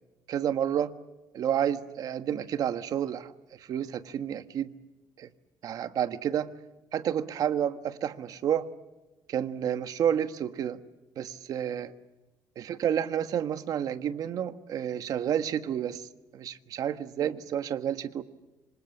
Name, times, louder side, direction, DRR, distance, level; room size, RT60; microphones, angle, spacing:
voice 1, 0.3-0.9 1.3-4.7 5.2-5.3 5.6-6.5 6.9-8.7 9.3-10.8 11.2-11.9 12.8-16.1 16.3-18.2, right 9 dB, 50° right, 10 dB, 1.3 m, -30 dB
26.0 x 26.0 x 7.2 m, 1.1 s
cardioid pair, 150°, 8 cm